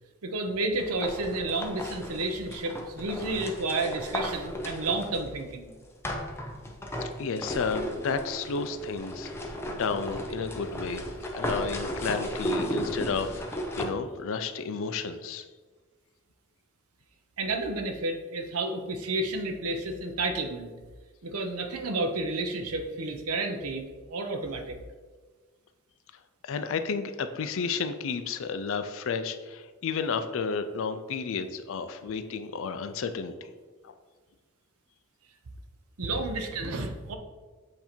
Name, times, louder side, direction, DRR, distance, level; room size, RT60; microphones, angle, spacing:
voice 1, 0.2-5.7 17.4-20.7 21.2-24.8 36.0-37.2, right 2 dB, 75° right, 6 dB, 0.7 m, -31 dB
sound 1, 0.8-5.4 6.0-13.8, equal, 10° left, 0.5 m, -35 dB
voice 2, 7.0-11.1 11.3-15.4 26.4-33.4 33.8-33.9, left 5 dB, 60° left, 10 dB, 0.4 m, -32 dB
7.8 x 2.8 x 4.3 m, 1.4 s
head